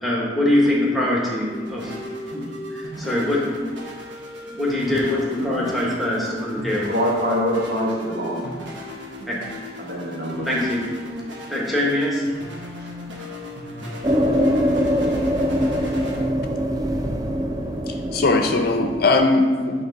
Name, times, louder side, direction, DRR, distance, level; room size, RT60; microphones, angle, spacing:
voice 1, 0.0-2.0 2.3-3.4 4.5-6.9 9.3-9.4 10.4-10.8 11.5-12.2, left 1 dB, ahead, -4 dB, 1.1 m, -23 dB
sound 1, 0.7-18.9, equal, 85° right, 1.1 m, -36 dB
voice 2, 6.9-8.5 9.8-10.5 12.6-12.9, equal, 65° right, -4 dB, 1.5 m, -25 dB
sound 2, 14.0-19.2, equal, 20° right, 0.4 m, -23 dB
voice 3, 17.9-19.8, left 3 dB, 55° left, 5 dB, 0.5 m, -20 dB
7.8 x 3.2 x 4.0 m, 1.5 s
head